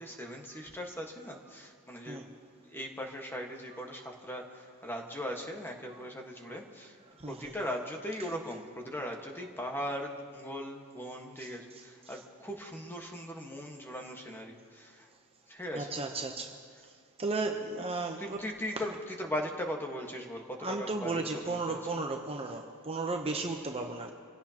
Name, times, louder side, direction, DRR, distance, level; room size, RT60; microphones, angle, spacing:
voice 1, 0.0-2.3 2.6-7.0 7.3-15.1 15.5-16.0 18.2-21.8, equal, 10° left, 1 dB, 1.5 m, -39 dB
voice 2, 15.7-16.6 17.2-18.4 20.6-24.1, right 3 dB, 25° right, 3 dB, 0.8 m, -34 dB
26.0 x 16.5 x 2.9 m, 2.1 s
head